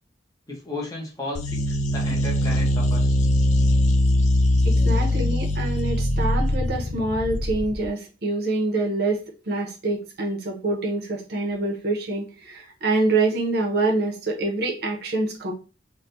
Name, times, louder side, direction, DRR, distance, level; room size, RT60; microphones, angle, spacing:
voice 1, 0.5-3.2, left 2 dB, 20° left, -3 dB, 1.0 m, -34 dB
sound 1, 1.3-7.9, left 1 dB, 40° left, 0.3 m, -21 dB
voice 2, 4.7-9.2 9.5-15.5, right 2 dB, 55° right, 1 dB, 0.8 m, -26 dB
3.5 x 2.3 x 2.6 m, 0.34 s
head